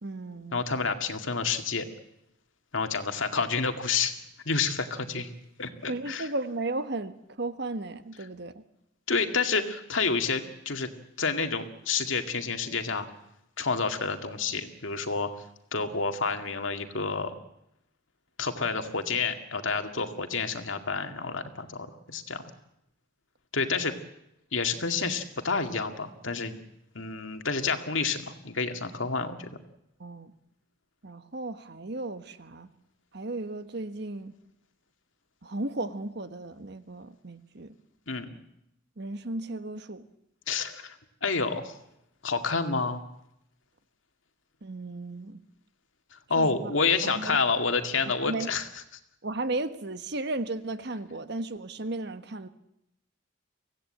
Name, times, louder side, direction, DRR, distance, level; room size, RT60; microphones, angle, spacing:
voice 1, 0.0-0.6 5.9-8.6 23.8-23.9 30.0-30.3 31.0-32.7 33.1-34.3 35.4-37.7 39.0-40.0 44.6-45.4 46.4-46.7 47.0-47.4 48.2-48.5 49.2-52.5, right 2 dB, 60° right, 11 dB, 1.3 m, -35 dB
voice 2, 0.5-1.9 2.7-4.1 4.5-5.3 5.6-6.3 9.1-10.9 11.2-13.1 13.6-15.3 15.7-17.3 18.4-22.4 23.5-23.9 24.5-26.6 27.0-29.6 38.1-38.3 40.5-41.0 41.2-41.7 42.2-43.0 46.3-48.7, left 4 dB, 80° left, 6 dB, 2.1 m, -29 dB
24.0 x 16.5 x 8.7 m, 0.83 s
head